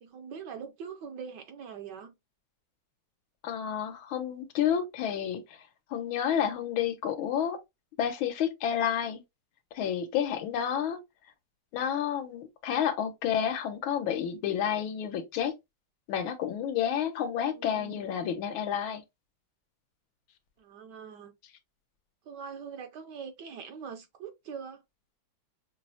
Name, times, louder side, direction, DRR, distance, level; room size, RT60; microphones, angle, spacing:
voice 1, 0.0-2.1 17.4-18.1 20.6-21.3 22.2-24.8, right 6 dB, 75° right, 1.1 m, -43 dB
voice 2, 3.4-5.4 5.9-7.6 8.0-9.2 9.7-11.0 11.7-15.5 16.1-19.0, left 9 dB, 85° left, 1.6 m, -30 dB
6.0 x 2.0 x 2.7 m
omnidirectional pair, 2.2 m